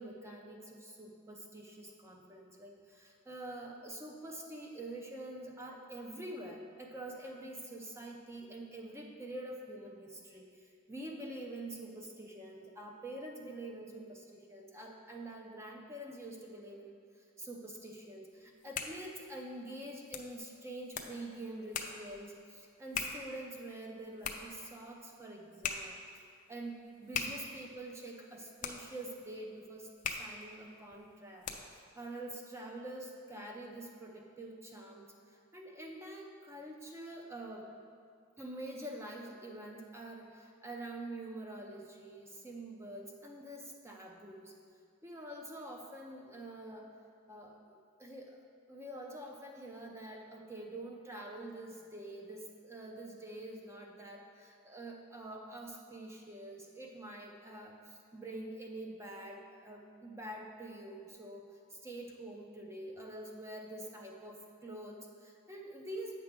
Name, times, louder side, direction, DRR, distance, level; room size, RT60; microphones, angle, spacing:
voice 1, 0.0-26.0 26.5-29.9 30.2-37.7 38.4-44.5 45.0-46.9 47.3-48.4 48.7-61.4 61.7-66.1, right 1 dB, 10° right, 0 dB, 0.6 m, -46 dB
sound 1, 18.4-31.9, left 6 dB, 35° left, 0.5 m, -44 dB
8.5 x 5.9 x 3.7 m, 2.3 s
head